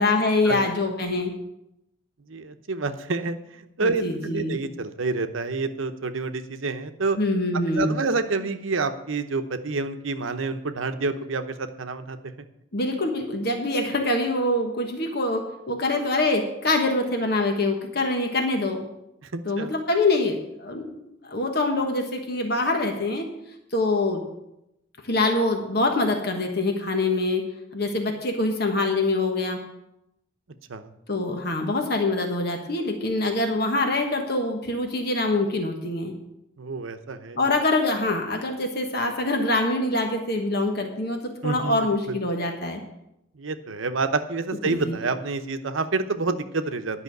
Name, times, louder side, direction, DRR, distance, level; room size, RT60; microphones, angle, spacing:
voice 1, 0.0-1.3 3.8-4.6 7.2-8.0 12.7-18.8 19.4-23.3 23.7-24.2 25.0-27.4 27.7-29.6 31.1-36.1 37.3-42.8 44.6-45.0, left 2 dB, 55° left, 3 dB, 1.3 m, -25 dB
voice 2, 2.3-7.2 7.5-12.3 19.3-19.7 30.7-30.9 36.6-37.4 41.4-41.8 42.1-42.2 43.4-47.0, right 3 dB, 85° right, 9 dB, 0.8 m, -28 dB
11.0 x 5.6 x 7.9 m, 0.85 s
head